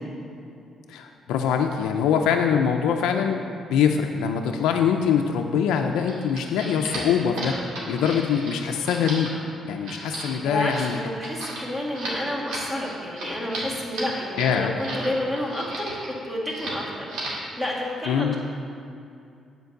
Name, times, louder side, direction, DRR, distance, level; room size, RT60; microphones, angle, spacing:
voice 1, 0.9-3.4 3.7-9.3 9.6-11.0 14.4-14.7 18.1-18.3, left 7 dB, 90° left, 3 dB, 0.4 m, -23 dB
sound 1, 5.9-15.1 15.4-16.1 16.5-16.8 17.1-17.5, right 1 dB, 85° right, 2.1 m, -35 dB
voice 2, 10.4-16.0 16.2-18.4, left 1 dB, 10° right, -4 dB, 1.9 m, -30 dB
8.1 x 4.5 x 6.4 m, 2.5 s
cardioid pair, 90°, 0 cm